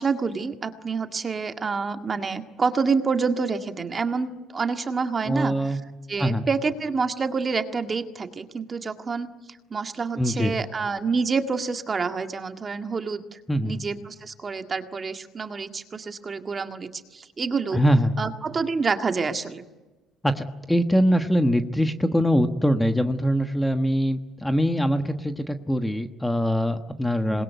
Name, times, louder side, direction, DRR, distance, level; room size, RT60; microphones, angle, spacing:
voice 1, 0.0-5.8 6.1-9.3 9.7-17.8 18.2-19.6 27.2-27.4, right 4 dB, 25° right, 7 dB, 1.9 m, -28 dB
voice 2, 5.3-5.8 6.2-6.4 10.2-10.5 13.5-13.8 17.7-18.1 20.2-27.4, equal, 5° left, 7 dB, 1.2 m, -23 dB
27.0 x 21.5 x 9.3 m, 1.2 s
cardioid pair, 135°, 0 cm